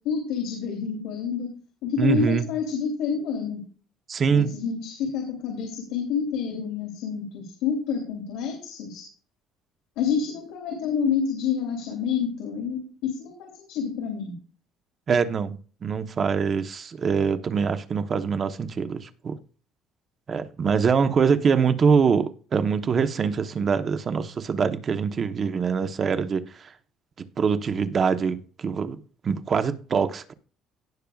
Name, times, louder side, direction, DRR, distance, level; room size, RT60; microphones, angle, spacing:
voice 1, 0.0-1.5 1.8-3.6 4.3-9.1 10.0-14.3, left 6 dB, 85° left, 3.1 m, -28 dB
voice 2, 2.0-2.5 4.1-4.5 15.1-19.4 20.3-26.7 27.2-30.3, right 6 dB, 35° right, 1.0 m, -24 dB
17.5 x 6.7 x 2.4 m
cardioid pair, 140°, 0 cm